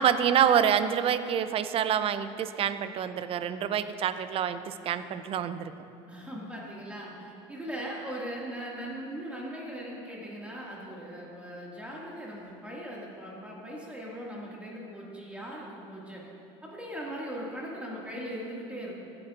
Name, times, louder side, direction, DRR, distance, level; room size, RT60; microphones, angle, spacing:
voice 1, 0.0-5.7, right 8 dB, 40° right, 12 dB, 0.5 m, -27 dB
voice 2, 6.1-16.2 16.6-19.0, equal, 10° right, -4 dB, 2.0 m, -39 dB
15.0 x 9.7 x 2.5 m, 2.7 s
supercardioid pair, 95°, 14 cm